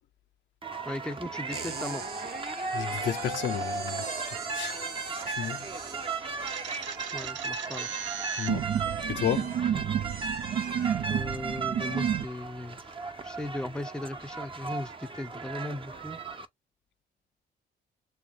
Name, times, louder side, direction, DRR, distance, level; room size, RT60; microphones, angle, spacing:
sound 1, 0.6-16.5, right 4 dB, 25° right, 0.8 m, -36 dB
voice 1, 0.8-2.1 7.1-7.9 9.7-9.9 11.1-12.8 13.2-16.2, left 1 dB, 5° left, 0.6 m, -37 dB
sound 2, 1.5-11.5, right 5 dB, 50° right, 1.1 m, -42 dB
voice 2, 2.7-4.8 5.2-5.7 8.4-8.7 9.1-9.5, left 10 dB, 65° left, 0.7 m, -32 dB
sound 3, 6.5-12.3, right 9 dB, 65° right, 0.8 m, -31 dB
3.3 x 3.1 x 3.6 m
cardioid pair, 90°, 20 cm